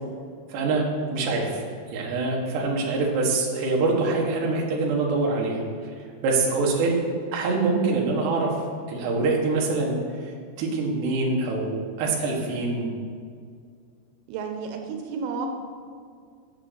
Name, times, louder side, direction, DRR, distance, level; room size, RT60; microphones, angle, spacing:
voice 1, 0.5-0.8 1.1-1.6 1.9-7.0 7.3-8.5 8.9-10.3 10.6-12.9, right 3 dB, 65° right, -2 dB, 3.6 m, -25 dB
voice 2, 14.3-15.5, right 5 dB, 90° right, 3 dB, 3.5 m, -32 dB
8.8 x 7.5 x 8.1 m, 2.1 s
omnidirectional pair, 5.6 m